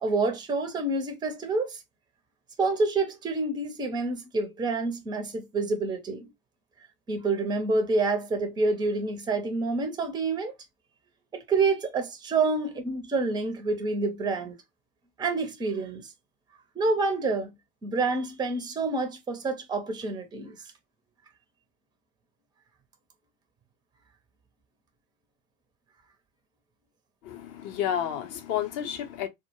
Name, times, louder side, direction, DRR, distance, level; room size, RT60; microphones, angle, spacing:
voice 1, 0.0-1.8 2.6-6.3 7.1-10.5 11.3-14.6 15.2-16.1 16.8-17.5 17.8-20.6, right 3 dB, 10° right, 0.5 m, -28 dB
voice 2, 27.2-29.3, left 10 dB, 35° left, 0.6 m, -31 dB
2.2 x 2.0 x 2.9 m
hypercardioid pair, 90°, 43 cm